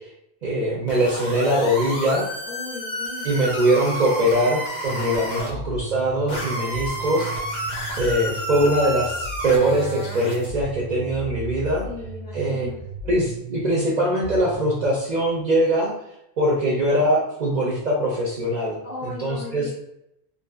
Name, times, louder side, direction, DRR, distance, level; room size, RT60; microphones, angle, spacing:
voice 1, 0.4-2.2 3.2-7.3 8.0-11.8 12.3-12.7 13.0-15.9 16.4-18.8 19.0-19.7, right 1 dB, 55° right, -4 dB, 0.5 m, -22 dB
sound 1, 0.9-5.5 6.3-10.5, equal, 70° left, 0.9 m, -31 dB
voice 2, 2.4-3.3 4.9-5.6 11.8-12.8 18.8-19.7, left 3 dB, 45° left, -4 dB, 0.7 m, -37 dB
sound 2, 4.9-14.9, right 3 dB, 80° right, 0.9 m, -36 dB
2.6 x 2.5 x 2.3 m, 0.81 s
omnidirectional pair, 1.1 m